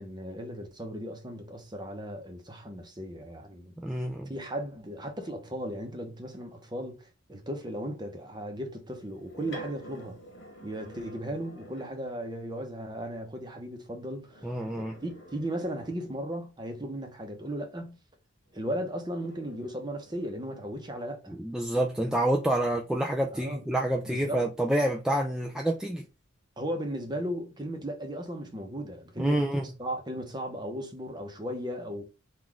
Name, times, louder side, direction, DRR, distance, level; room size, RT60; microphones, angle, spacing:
voice 1, 0.0-3.7 4.3-10.2 10.6-14.5 14.7-18.0 18.5-21.4 23.3-23.6 24.1-24.4 26.6-32.0, equal, 20° right, 0.8 m, -36 dB
voice 2, 3.8-4.3 14.4-15.0 21.3-26.0 29.2-29.7, right 1 dB, 5° right, 0.3 m, -28 dB
sound 1, 8.9-12.2 14.2-16.5 18.5-23.7 24.2-26.0, right 1 dB, 65° left, 1.6 m, -50 dB
3.9 x 2.5 x 4.6 m
head